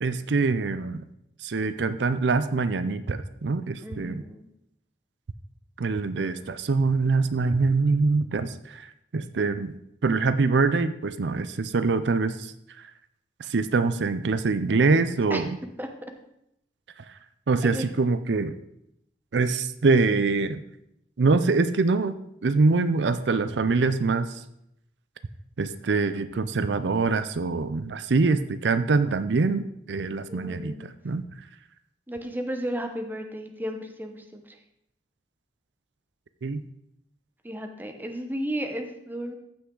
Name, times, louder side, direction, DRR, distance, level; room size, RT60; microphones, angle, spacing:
voice 1, 0.0-1.0 1.4-4.2 5.8-8.9 9.1-9.7 10.0-12.5 13.4-15.6 17.5-18.5 19.3-20.6 21.2-24.4 25.6-31.2 36.4-36.6, right 3 dB, 80° right, 12 dB, 0.5 m, -24 dB
voice 2, 3.8-4.4 8.3-8.5 15.3-15.4 15.8-15.9 17.6-17.9 30.3-30.9 32.1-34.6 37.4-39.3, equal, 10° right, 5 dB, 0.9 m, -34 dB
14.5 x 5.8 x 3.8 m, 0.79 s
head